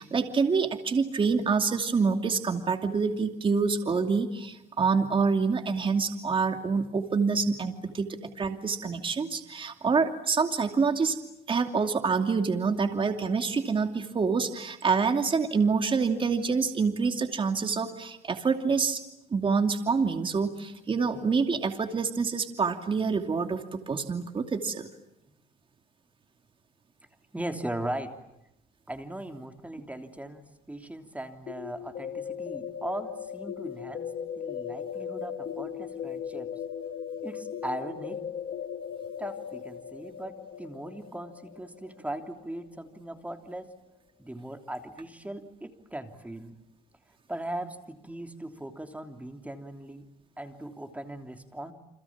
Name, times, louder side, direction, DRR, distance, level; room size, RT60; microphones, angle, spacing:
voice 1, 0.0-11.2 11.5-19.0 19.3-24.9, right 5 dB, 30° right, 6 dB, 2.6 m, -27 dB
voice 2, 27.3-28.2 28.9-34.1 34.4-36.5 37.2-38.3 39.2-43.7 44.2-46.5 47.3-50.1 50.4-51.7, right 1 dB, 10° right, 6 dB, 3.1 m, -39 dB
sound 1, 31.5-43.2, left 8 dB, 50° left, 1.4 m, -38 dB
30.0 x 27.0 x 7.3 m, 0.85 s
cardioid pair, 110°, 17 cm